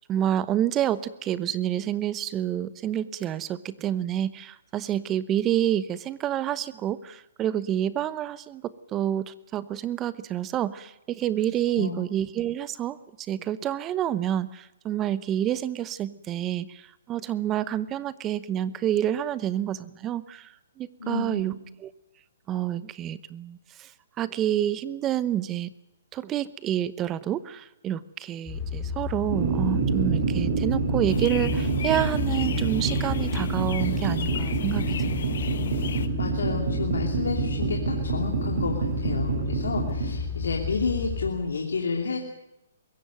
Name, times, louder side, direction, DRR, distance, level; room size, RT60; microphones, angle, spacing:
voice 1, 0.1-13.0 13.3-21.9 22.5-23.9 24.2-25.7 26.1-35.5, right 11 dB, 20° right, 17 dB, 0.9 m, -28 dB
voice 2, 21.0-21.6 35.7-42.2, left 4 dB, 80° left, 1 dB, 2.9 m, -30 dB
sound 1, 28.5-41.3, left 5 dB, 5° left, 6.7 m, -32 dB
sound 2, 29.3-40.1, right 6 dB, 65° right, 7.0 m, -28 dB
sound 3, 31.1-36.1, left 8 dB, 60° left, 1.3 m, -34 dB
22.0 x 17.0 x 9.3 m, 0.87 s
hypercardioid pair, 140°, 0 cm